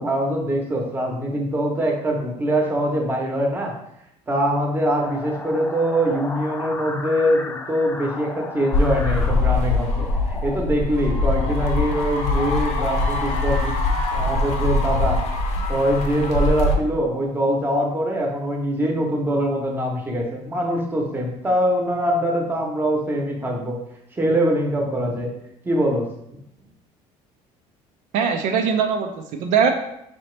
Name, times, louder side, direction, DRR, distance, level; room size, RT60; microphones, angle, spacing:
voice 1, 0.0-3.7 4.3-15.2 15.5-23.8 24.1-25.3 25.6-26.1, equal, 15° right, 0 dB, 0.8 m, -23 dB
sound 1, 5.0-10.6, left 2 dB, 15° left, 0.3 m, -34 dB
sound 2, 8.7-16.8, left 2 dB, 60° left, 0.7 m, -22 dB
voice 2, 28.1-29.7, right 6 dB, 70° right, 4 dB, 0.4 m, -21 dB
4.1 x 2.9 x 3.2 m, 0.79 s
cardioid pair, 120°, 13 cm